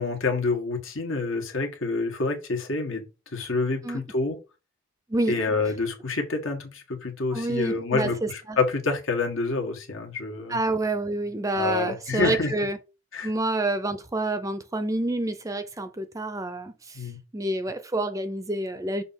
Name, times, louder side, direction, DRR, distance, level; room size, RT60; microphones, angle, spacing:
voice 1, 0.0-3.0 3.3-4.4 5.3-10.6 11.5-12.5 13.1-13.3 16.9-17.2, left 3 dB, 75° left, 1.6 m, -27 dB
voice 2, 7.3-8.6 10.5-12.8 13.2-17.0 17.3-19.0, right 2 dB, 15° right, 0.5 m, -28 dB
6.6 x 2.8 x 5.7 m
head